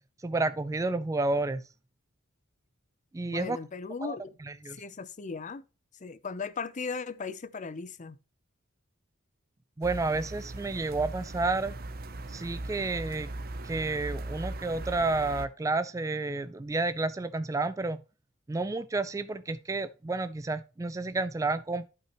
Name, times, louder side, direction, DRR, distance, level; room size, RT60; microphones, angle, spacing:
voice 1, 0.2-1.6 3.1-3.6 4.0-4.2 4.4-4.8 9.8-11.7 12.3-13.3 13.6-18.0 18.5-21.8, right 3 dB, 15° right, 0.4 m, -30 dB
voice 2, 3.3-4.4 4.7-5.6 6.0-8.2, left 4 dB, 40° left, 0.6 m, -37 dB
sound 1, 9.8-15.5, right 2 dB, 50° right, 0.7 m, -39 dB
12.0 x 5.5 x 3.0 m
head